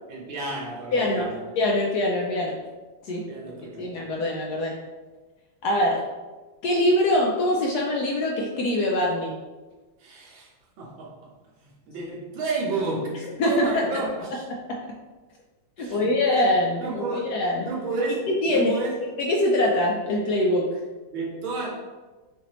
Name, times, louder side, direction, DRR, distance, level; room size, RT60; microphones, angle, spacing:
voice 1, 0.1-1.4 3.3-3.9 10.0-10.5 10.8-11.3 11.6-14.5 15.8-16.1 16.8-17.3 17.6-19.0 21.1-21.7, right 3 dB, 85° right, -3 dB, 1.8 m, -31 dB
voice 2, 0.9-1.3 1.6-2.6 3.0-3.2 3.8-4.7 5.6-6.0 6.6-9.3 13.4-13.8 15.8-17.7 18.3-18.7 19.2-20.7, left 1 dB, 70° left, -1 dB, 0.9 m, -23 dB
5.7 x 2.7 x 2.9 m, 1.3 s
omnidirectional pair, 2.1 m